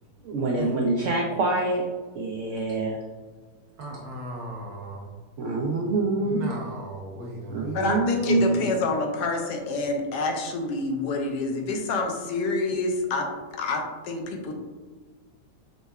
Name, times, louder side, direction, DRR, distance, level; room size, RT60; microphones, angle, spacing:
voice 1, 0.2-1.9 2.2-3.0 5.4-6.5 7.5-8.6, right 2 dB, 80° right, 0 dB, 0.6 m, -25 dB
voice 2, 3.8-5.1 6.2-8.7, right 2 dB, 65° right, -1 dB, 1.2 m, -37 dB
voice 3, 7.7-13.3 13.6-14.5, left 3 dB, 75° left, 3 dB, 1.2 m, -27 dB
5.4 x 3.1 x 2.3 m, 1.3 s
omnidirectional pair, 1.8 m